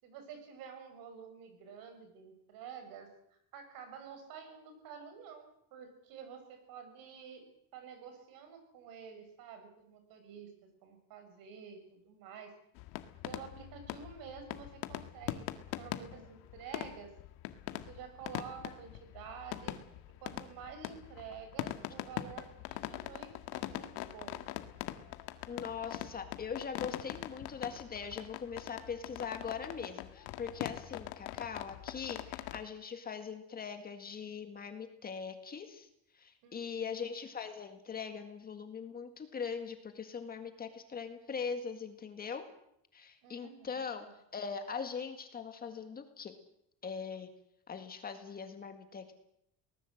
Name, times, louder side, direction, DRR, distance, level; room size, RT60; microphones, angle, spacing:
voice 1, 0.0-3.1 3.5-7.4 7.7-12.5 13.2-17.1 17.7-19.8 20.2-24.5 36.4-37.0 43.2-44.1, right 6 dB, 65° right, 7 dB, 6.6 m, -50 dB
sound 1, 12.8-32.6, left 14 dB, 80° left, 1.8 m, -43 dB
voice 2, 25.5-35.9 36.1-42.4 42.9-44.1 44.3-46.3 46.8-47.3 47.7-49.1, left 6 dB, 25° left, 7 dB, 1.9 m, -41 dB
24.0 x 19.0 x 7.9 m, 0.75 s
cardioid pair, 165°, 37 cm